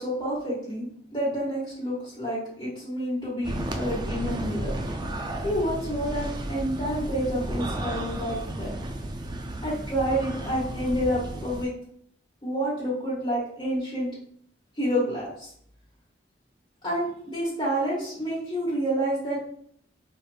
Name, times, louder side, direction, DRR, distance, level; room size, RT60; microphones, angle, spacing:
voice 1, 0.0-4.7 5.4-8.7 9.6-11.7 12.4-14.1 14.8-15.5 16.8-19.4, equal, 30° left, -8 dB, 1.3 m, -29 dB
sound 1, 3.4-11.6, right 1 dB, 25° right, 0.3 m, -33 dB
4.8 x 3.1 x 2.2 m, 0.64 s
head